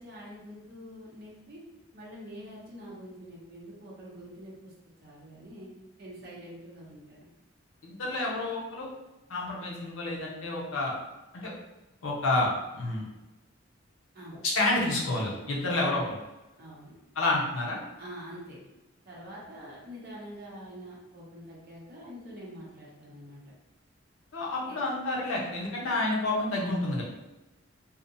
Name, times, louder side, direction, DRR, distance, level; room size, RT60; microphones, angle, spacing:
voice 1, 0.0-1.6 1.9-4.7 5.0-5.7 6.0-7.3 14.1-14.4 15.6-16.0 16.6-17.0 18.0-18.6 19.0-23.4 24.7-24.8, equal, 50° right, -5 dB, 0.8 m, -45 dB
voice 2, 7.8-8.9 9.3-10.9 11.3-11.5 12.0-13.1 14.5-16.2 17.2-17.8 24.3-27.0, left 2 dB, 85° left, -3 dB, 0.7 m, -29 dB
2.7 x 2.1 x 2.6 m, 1.0 s
head